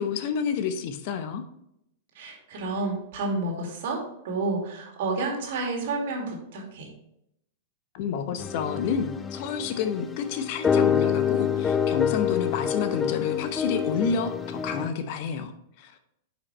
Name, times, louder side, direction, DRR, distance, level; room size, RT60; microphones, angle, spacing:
voice 1, 0.0-1.4 7.9-16.0, left 6 dB, 50° left, 9 dB, 0.8 m, -29 dB
voice 2, 2.2-6.9, right 3 dB, 55° right, 1 dB, 2.2 m, -30 dB
sound 1, 8.4-14.9, left 7 dB, 20° left, 0.6 m, -27 dB
9.6 x 5.1 x 3.1 m, 0.78 s
figure-of-eight pair, 100°, 0 cm